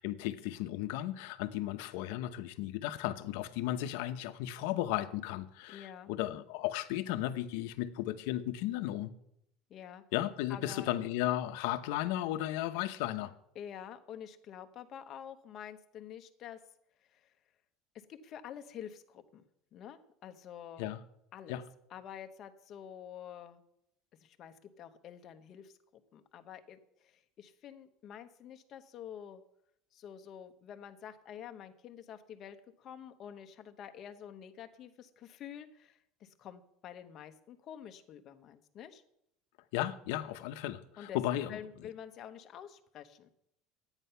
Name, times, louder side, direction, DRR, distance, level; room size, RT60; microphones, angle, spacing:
voice 1, 0.0-9.1 10.1-13.3 20.8-21.0 21.5-21.6 39.7-41.6, left 14 dB, 70° left, 10 dB, 0.8 m, -35 dB
voice 2, 5.7-6.1 9.7-10.0 10.5-10.9 13.5-16.6 17.1-17.3 18.1-20.9 21.3-21.6 21.9-23.6 24.2-29.4 29.9-39.0 41.0-41.2 41.5-43.3, left 9 dB, 30° left, 7 dB, 0.8 m, -48 dB
11.0 x 8.9 x 5.6 m, 0.76 s
cardioid pair, 180°, 0 cm